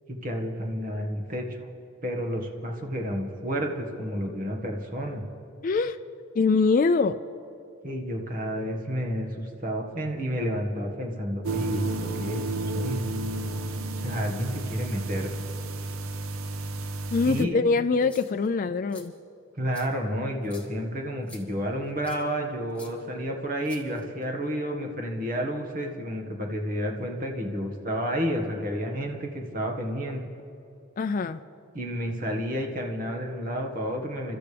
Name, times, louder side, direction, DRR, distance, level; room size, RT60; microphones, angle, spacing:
voice 1, 0.1-1.7 2.0-5.2 7.8-13.1 14.0-15.3 17.3-17.6 19.6-30.2 31.7-34.4, equal, 40° right, 2 dB, 1.7 m, -30 dB
voice 2, 5.6-6.0 6.4-7.2 17.1-19.1 31.0-31.4, left 4 dB, 40° left, 9 dB, 0.3 m, -23 dB
sound 1, 11.4-17.4, right 2 dB, 80° right, 0.8 m, -32 dB
sound 2, 17.9-18.5 18.9-19.1 19.7-19.9 20.4-20.7 21.3-21.4 22.0-22.2 22.8-22.9 23.6-24.2, left 3 dB, 5° left, 1.5 m, -49 dB
29.0 x 13.0 x 3.4 m, 2.8 s
head